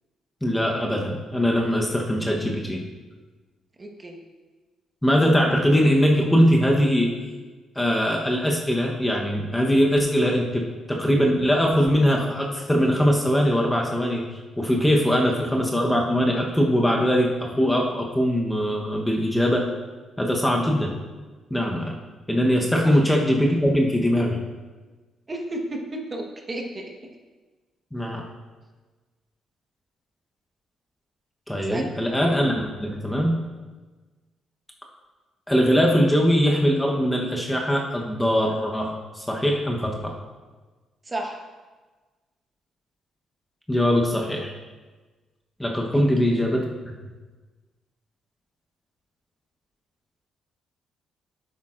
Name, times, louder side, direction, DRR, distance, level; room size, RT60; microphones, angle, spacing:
voice 1, 0.4-2.8 5.0-7.2 7.7-14.3 14.6-19.7 20.2-21.0 21.5-21.9 22.3-24.4 27.9-28.2 31.5-33.5 35.5-40.2 43.7-44.5 45.6-46.7, equal, 10° left, 0 dB, 1.0 m, -21 dB
voice 2, 3.8-4.2 22.8-23.0 25.3-26.8 31.6-32.0 41.0-41.4 45.9-46.4, right 1 dB, 25° right, 1 dB, 1.3 m, -33 dB
10.0 x 8.4 x 2.5 m, 1.3 s
cardioid pair, 90°, 0 cm